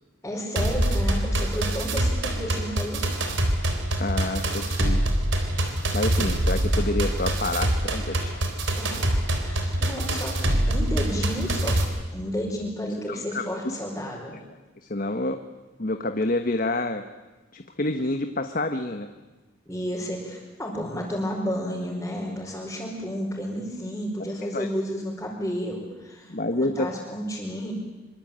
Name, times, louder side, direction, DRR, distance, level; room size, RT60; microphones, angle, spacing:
voice 1, 0.2-3.0 8.8-11.8 12.1-14.4 19.7-27.7, equal, 10° left, -6 dB, 5.1 m, -32 dB
sound 1, 0.6-11.8, right 1 dB, 75° right, 4.0 m, -25 dB
voice 2, 4.0-5.0 5.9-8.4 13.1-13.7 14.3-14.4 14.9-15.4 15.8-17.1 17.5-19.1 24.5-24.7 26.3-26.9, left 2 dB, 45° left, 7 dB, 1.2 m, -28 dB
25.0 x 24.5 x 8.9 m, 1.2 s
head